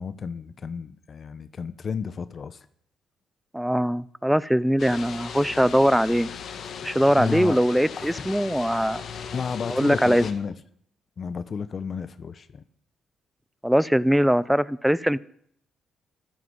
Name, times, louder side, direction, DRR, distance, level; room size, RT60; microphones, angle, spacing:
voice 1, 0.0-2.6 7.2-7.6 8.0-8.3 9.3-10.5 11.2-12.6, left 6 dB, 45° left, 13 dB, 1.0 m, -32 dB
voice 2, 3.5-6.3 6.8-9.0 9.7-10.3 13.6-15.2, equal, ahead, 20 dB, 0.7 m, -21 dB
sound 1, 4.8-10.3, left 7 dB, 60° left, 2.2 m, -38 dB
13.5 x 13.0 x 8.0 m, 0.66 s
cardioid pair, 90°, 0 cm